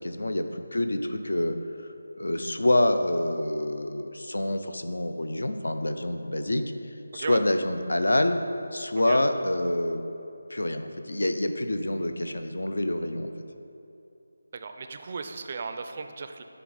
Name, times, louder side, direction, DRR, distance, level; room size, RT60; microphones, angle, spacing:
voice 1, 0.0-1.5 2.1-6.6 7.1-8.4 8.7-10.0 10.5-13.3, left 1 dB, 80° left, 8 dB, 0.5 m, -27 dB
voice 2, 14.5-16.4, right 4 dB, 35° right, 7 dB, 0.4 m, -36 dB
9.3 x 3.4 x 3.9 m, 2.8 s
figure-of-eight pair, 165°, 0 cm